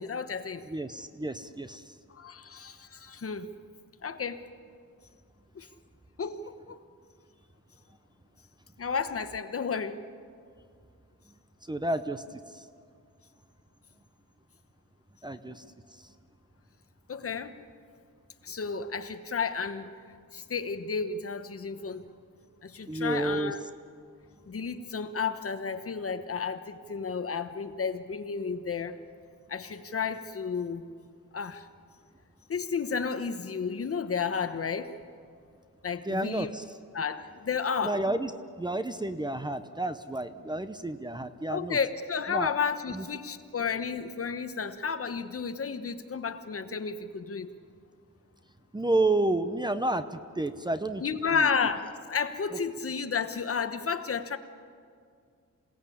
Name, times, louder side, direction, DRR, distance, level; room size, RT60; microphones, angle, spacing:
voice 1, 0.0-0.6 2.1-3.5 4.0-4.4 5.5-5.7 6.2-6.8 8.8-10.0 17.1-17.5 18.4-19.9 20.3-22.1 22.6-23.6 24.5-29.0 29.5-30.8 31.3-31.7 32.5-34.9 35.8-36.5 36.9-38.0 41.5-47.5 51.0-54.4, left 5 dB, 45° left, 9 dB, 1.2 m, -32 dB
voice 2, 0.7-1.9 11.7-12.7 15.2-15.7 16.0-16.1 22.9-23.5 36.0-36.6 37.8-38.3 38.6-41.8 42.3-42.5 42.9-43.1 48.7-51.0 51.3-51.5 52.5-52.6, right 2 dB, 15° right, 10 dB, 0.8 m, -30 dB
27.5 x 18.0 x 8.6 m, 2.2 s
wide cardioid pair, 135°, 31 cm